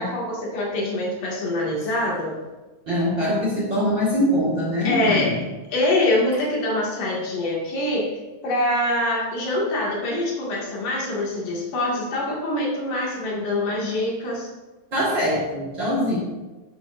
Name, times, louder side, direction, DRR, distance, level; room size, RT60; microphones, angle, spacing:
voice 1, 0.0-2.4 4.9-5.4 5.7-8.2 8.4-14.5, left 1 dB, 65° left, -4 dB, 3.7 m, -24 dB
voice 2, 2.9-5.4 14.9-16.2, equal, 40° right, -6 dB, 2.1 m, -23 dB
12.0 x 9.5 x 2.6 m, 1.2 s
omnidirectional pair, 4.1 m